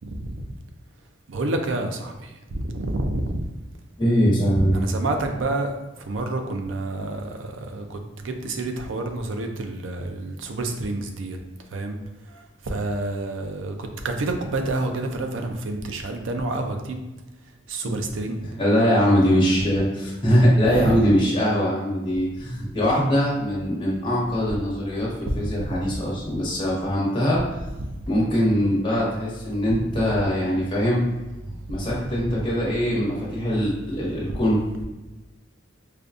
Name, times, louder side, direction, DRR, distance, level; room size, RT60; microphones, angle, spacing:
voice 1, 1.3-2.1 2.5-3.4 4.7-5.7 6.1-8.0 8.2-11.4 11.7-12.0 12.7-17.0 17.7-18.4 20.7-21.0 25.3-25.8 27.8-27.9 29.7-29.8 31.8-31.9, right 2 dB, 75° right, 5 dB, 0.5 m, -28 dB
voice 2, 4.0-4.8 17.8-17.9 18.4-25.1 25.4-27.4 28.1-31.0 31.5-34.6, equal, 25° left, -6 dB, 1.2 m, -22 dB
5.0 x 2.3 x 2.5 m, 1.1 s
head